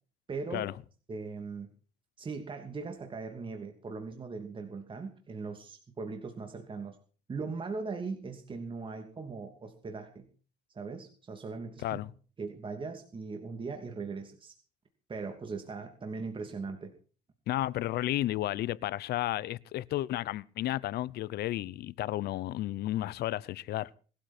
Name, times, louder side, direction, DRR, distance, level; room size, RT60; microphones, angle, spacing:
voice 1, 0.3-0.7 1.1-1.7 2.2-7.0 7.3-10.3 10.7-12.0 12.4-14.5 15.1-16.9, right 4 dB, 30° right, 2.8 m, -39 dB
voice 2, 17.5-23.9, left 14 dB, 70° left, 0.8 m, -32 dB
20.5 x 13.0 x 4.4 m
cardioid pair, 110°, 17 cm